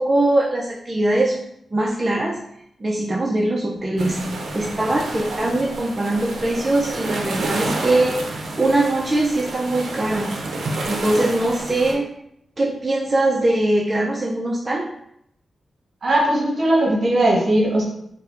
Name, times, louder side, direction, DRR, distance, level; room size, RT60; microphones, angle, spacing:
voice 1, 0.0-2.4 2.8-4.2 4.5-8.2 8.6-10.4 10.9-12.1 12.6-14.9, right 2 dB, 30° right, -3 dB, 0.4 m, -21 dB
sound 1, 4.0-11.9, right 2 dB, 80° right, 0.5 m, -29 dB
voice 2, 16.0-17.8, right 1 dB, 60° right, -2 dB, 1.0 m, -18 dB
4.1 x 2.1 x 2.5 m, 0.74 s
cardioid pair, 70°, 0 cm